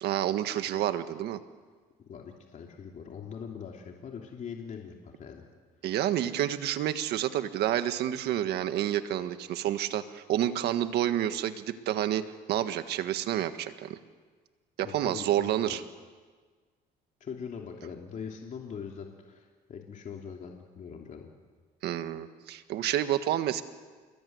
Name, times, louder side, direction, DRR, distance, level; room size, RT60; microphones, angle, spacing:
voice 1, 0.0-1.4 5.8-14.0 14.8-15.8 21.8-23.6, right 11 dB, 75° right, 10 dB, 1.6 m, -29 dB
voice 2, 2.1-5.5 14.8-15.8 17.2-21.3, left 6 dB, 50° left, 1 dB, 3.0 m, -42 dB
28.0 x 21.0 x 9.6 m, 1.5 s
cardioid pair, 110°, 17 cm